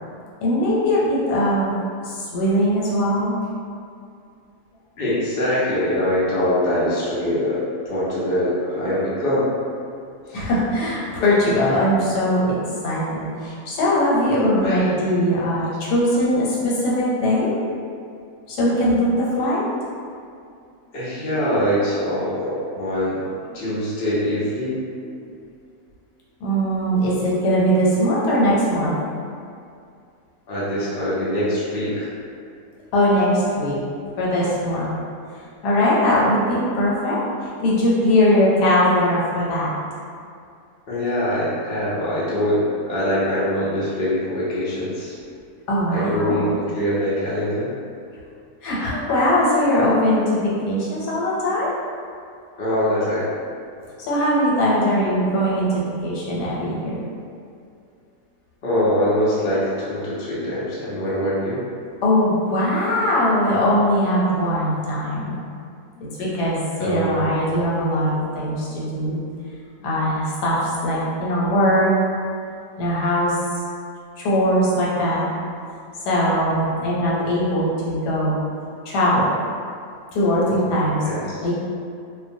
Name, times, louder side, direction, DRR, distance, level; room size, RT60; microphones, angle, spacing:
voice 1, 0.4-1.7 2.0-3.4 10.3-12.6 12.8-17.5 18.5-19.6 26.4-29.0 32.9-33.8 34.2-34.9 35.6-39.7 45.7-46.5 48.6-51.7 54.0-57.0 62.0-65.4 66.2-69.2 69.8-71.9 72.8-73.4 74.2-75.3 76.1-78.4 78.9-79.3 80.1-81.0 81.4-81.5, equal, 90° left, -6 dB, 1.2 m, -20 dB
voice 2, 5.0-9.5 10.3-10.5 14.6-14.9 19.3-19.4 20.9-23.3 23.5-24.8 30.5-32.1 40.9-45.1 45.9-47.7 52.6-53.3 58.6-61.6 66.8-67.4 80.4-80.7 81.0-81.2, equal, 65° left, -9 dB, 0.5 m, -23 dB
2.6 x 2.1 x 2.6 m, 2.4 s
omnidirectional pair, 1.7 m